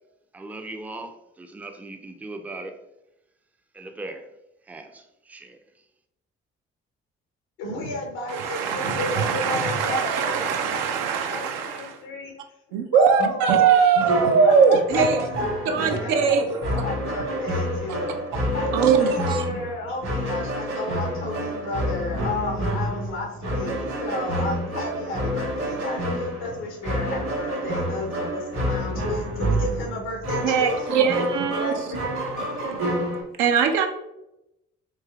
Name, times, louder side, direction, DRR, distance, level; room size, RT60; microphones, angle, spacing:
voice 1, 0.3-2.8 3.7-4.3 4.7-5.6, right 2 dB, 5° right, 6 dB, 0.4 m, -39 dB
voice 2, 7.6-12.3 12.9-14.1 14.4-15.2 15.6-18.2 18.5-30.9 31.5-32.9, left 2 dB, 75° left, 0 dB, 0.8 m, -33 dB
voice 3, 8.3-11.9 12.7-15.2 15.7-16.5 18.7-19.4 30.4-31.7 33.4-33.9, right 6 dB, 75° right, 5 dB, 0.5 m, -21 dB
sound 1, 14.0-33.2, equal, 60° right, 1.3 m, -28 dB
3.3 x 3.0 x 2.3 m, 0.87 s
hypercardioid pair, 40°, 33 cm